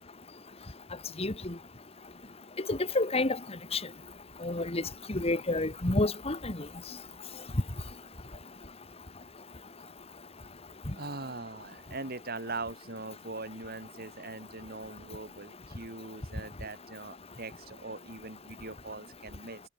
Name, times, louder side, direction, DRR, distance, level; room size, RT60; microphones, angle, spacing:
voice 1, 1.2-1.6 2.7-3.4 3.7-3.8 4.4-4.8 5.1-6.6, left 2 dB, 30° left, 1.7 m, -29 dB
voice 2, 10.9-19.6, right 3 dB, 55° right, 5.9 m, -41 dB
head